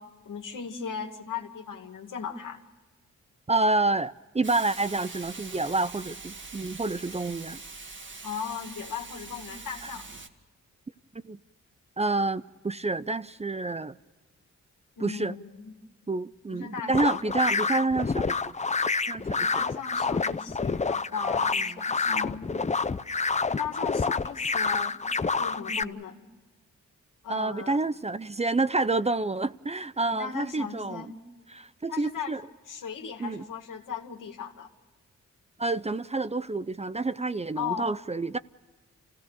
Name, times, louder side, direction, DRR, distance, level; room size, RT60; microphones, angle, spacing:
voice 1, 0.0-2.6 8.2-10.1 15.0-15.7 16.5-17.2 19.4-22.5 23.5-25.0 25.4-26.2 27.2-27.8 30.1-31.2 31.9-32.4 32.7-34.7 37.6-37.9, left 7 dB, 80° left, 2.3 m, -37 dB
voice 2, 3.5-7.6 9.8-9.9 11.2-11.4 12.0-14.0 15.0-15.4 16.1-18.5 19.1-19.5 25.7-25.9 27.3-31.0 31.5-32.4 33.2-33.4 35.6-38.4, right 3 dB, 20° right, 0.6 m, -28 dB
Hiss, 4.4-10.3, right 3 dB, 40° right, 1.9 m, -43 dB
sound 1, 16.9-25.8, left 4 dB, 20° left, 0.6 m, -28 dB
27.5 x 16.5 x 6.8 m
cardioid pair, 70°, 31 cm